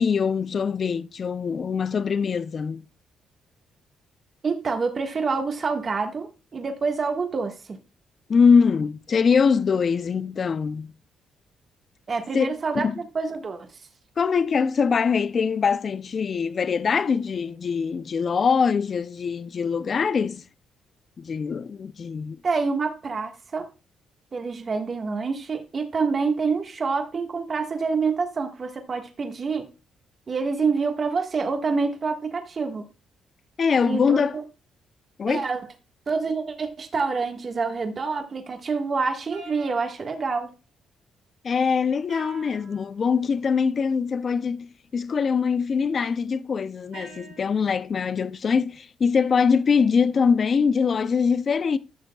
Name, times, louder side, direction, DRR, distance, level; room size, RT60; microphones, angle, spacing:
voice 1, 0.0-2.8 8.3-10.9 12.3-12.9 14.2-20.4 21.2-22.4 33.6-34.3 35.2-35.5 41.4-51.8, left 6 dB, 45° left, 0.5 m, -23 dB
voice 2, 4.4-7.8 12.1-13.7 22.4-23.7 24.3-29.7 30.3-32.9 33.9-34.4 35.3-35.6 36.1-40.5, right 4 dB, 40° right, 1.5 m, -27 dB
sound 1, 39.3-40.5 42.1-42.9 46.9-47.9, right 3 dB, 85° right, 3.2 m, -46 dB
12.5 x 6.4 x 2.3 m
cardioid pair, 90°, 0 cm